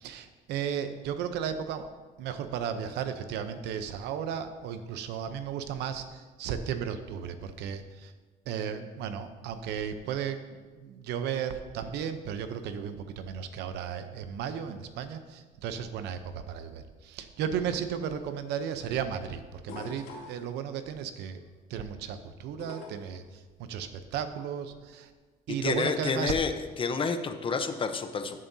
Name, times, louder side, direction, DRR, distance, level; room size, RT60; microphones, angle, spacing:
voice 1, 0.0-1.9 2.2-8.1 8.5-10.4 10.8-16.2 16.5-21.4 21.7-23.2 23.6-25.1 25.5-26.3, right 8 dB, 85° right, 9 dB, 0.8 m, -34 dB
sound 1, 19.7-20.4 22.6-23.1 24.7-24.8, left 4 dB, 75° left, 3.1 m, -42 dB
voice 2, 25.6-28.4, left 5 dB, 30° left, 8 dB, 0.8 m, -29 dB
14.0 x 7.5 x 2.8 m, 1.4 s
cardioid pair, 110°, 17 cm